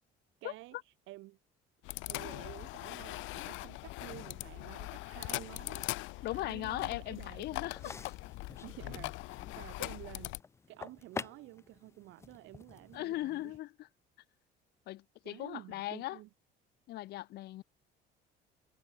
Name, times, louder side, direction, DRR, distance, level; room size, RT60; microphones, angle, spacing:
voice 1, 0.4-0.8 1.1-1.4 2.1-5.9 6.3-7.9 8.6-10.4 10.7-13.5 15.2-16.3, right 19 dB, 75° right, 4.5 m, -51 dB
sound 1, 1.8-10.4, left 20 dB, 75° left, 1.1 m, -41 dB
voice 2, 6.2-8.0 9.8-9.9 12.9-13.7 14.9-16.2 16.9-17.6, left 16 dB, 55° left, 0.7 m, -38 dB
sound 2, 7.7-13.6, left 5 dB, 15° left, 0.4 m, -48 dB
cardioid pair, 155°, 20 cm